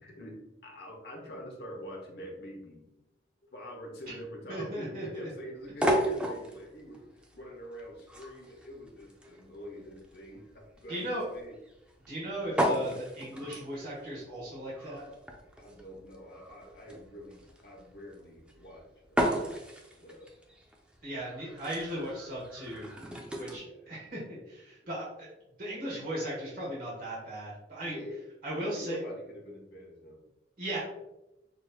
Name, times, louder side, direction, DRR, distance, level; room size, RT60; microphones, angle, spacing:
voice 1, 0.0-2.9 3.5-11.5 15.6-19.5 19.9-20.3 23.4-23.9 27.8-30.2, equal, 65° left, -1 dB, 1.0 m, -45 dB
voice 2, 4.5-5.2 10.9-11.2 12.1-15.0 21.0-22.9 23.4-25.3 25.6-28.0 28.4-29.0 30.6-30.8, right 1 dB, 55° right, -6 dB, 1.3 m, -37 dB
sound 1, 5.6-23.6, equal, 5° right, 0.4 m, -35 dB
6.0 x 2.7 x 2.3 m, 0.95 s
head